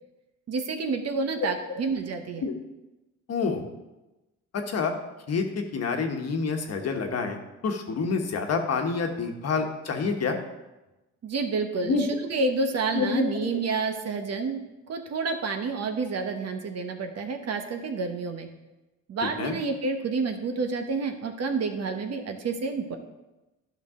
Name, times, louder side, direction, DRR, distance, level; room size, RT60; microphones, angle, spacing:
voice 1, 0.5-2.5 11.2-14.6 14.9-18.5 19.1-23.0, right 4 dB, 55° right, 6 dB, 1.1 m, -29 dB
voice 2, 3.3-3.6 4.7-4.9 5.3-7.4 7.6-10.4 11.8-12.0 12.9-13.6 19.4-19.6, left 4 dB, 55° left, 4 dB, 1.2 m, -27 dB
11.5 x 5.6 x 3.7 m, 1.0 s
cardioid pair, 90°, 30 cm